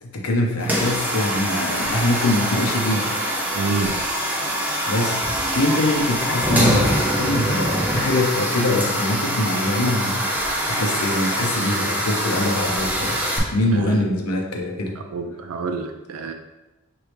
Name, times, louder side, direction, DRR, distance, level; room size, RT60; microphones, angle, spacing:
voice 1, 0.0-3.1 4.9-5.2 5.5-10.2 10.7-13.2 13.5-14.9, left 1 dB, 85° left, 1 dB, 0.8 m, -23 dB
sound 1, 0.6-13.4, equal, 5° right, 0.6 m, -24 dB
voice 2, 3.5-4.0 13.7-14.0 15.1-16.3, right 4 dB, 70° right, 5 dB, 0.4 m, -27 dB
4.5 x 3.1 x 3.3 m, 1.0 s
head